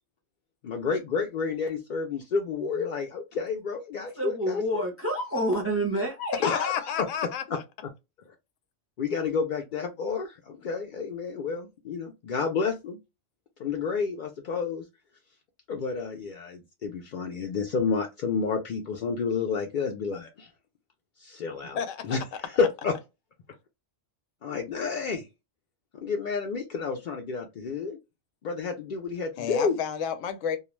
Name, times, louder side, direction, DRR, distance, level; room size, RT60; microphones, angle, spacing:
voice 1, 0.6-4.8 6.4-7.1 8.3-8.4 9.0-13.0 13.6-14.8 15.7-20.5 21.2-21.8 22.0-23.0 24.4-25.3 26.0-28.0 28.4-29.8, left 5 dB, 65° left, 0.5 m, -30 dB
voice 2, 4.2-6.9, right 1 dB, 15° right, 0.5 m, -29 dB
voice 3, 6.4-7.6 21.7-22.2 29.4-30.6, left 8 dB, 85° left, 0.9 m, -31 dB
2.3 x 2.2 x 3.0 m
omnidirectional pair, 1.3 m